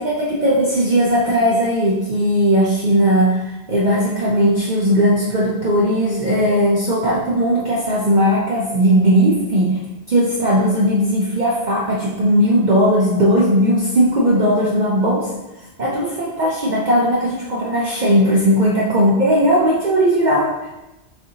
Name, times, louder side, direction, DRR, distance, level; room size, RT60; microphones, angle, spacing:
voice 1, 0.0-3.4 3.7-9.8 10.1-15.3 15.8-20.7, equal, 50° right, -5 dB, 0.7 m, -17 dB
6.5 x 2.6 x 2.8 m, 1.0 s
omnidirectional pair, 1.2 m